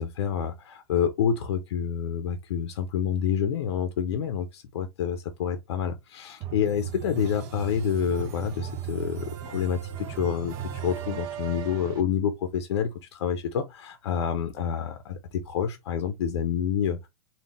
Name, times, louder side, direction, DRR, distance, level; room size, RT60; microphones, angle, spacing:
voice 1, 0.0-17.1, left 8 dB, 80° left, 0.7 m, -28 dB
sound 1, 6.4-12.0, right 9 dB, 20° right, 0.3 m, -36 dB
3.9 x 2.3 x 3.5 m
supercardioid pair, 175°, 14 cm